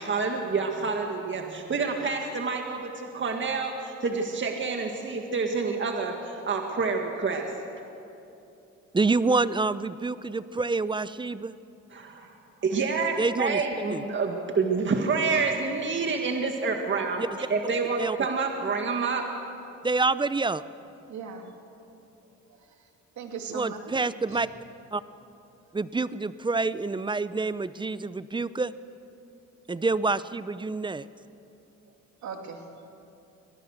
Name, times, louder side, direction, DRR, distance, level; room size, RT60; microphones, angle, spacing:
voice 1, 0.0-7.5 11.9-12.4 12.6-17.2 17.5-19.2, right 4 dB, 40° right, 2 dB, 1.9 m, -28 dB
voice 2, 8.9-11.6 13.2-13.6 13.9-14.0 17.2-17.3 17.6-17.7 18.0-18.2 19.8-20.6 23.5-24.5 24.9-25.0 25.7-28.7 29.7-31.1, right 3 dB, 15° right, 15 dB, 0.6 m, -27 dB
voice 3, 21.1-21.5 23.2-23.9 32.2-32.6, right 5 dB, 70° right, 3 dB, 2.7 m, -38 dB
23.5 x 18.5 x 6.5 m, 2.8 s
cardioid pair, 90°, 30 cm